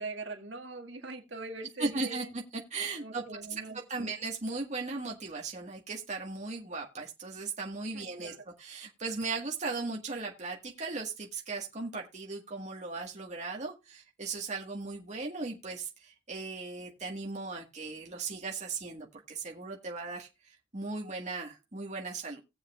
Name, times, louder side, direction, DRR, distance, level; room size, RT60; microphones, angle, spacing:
voice 1, 0.0-2.3 3.0-4.2 7.9-8.4, right 3 dB, 65° right, 4 dB, 2.0 m, -42 dB
voice 2, 1.8-2.4 2.7-3.4 3.9-22.4, right 3 dB, 40° right, 0 dB, 1.6 m, -37 dB
19.0 x 7.5 x 2.4 m, 0.26 s
head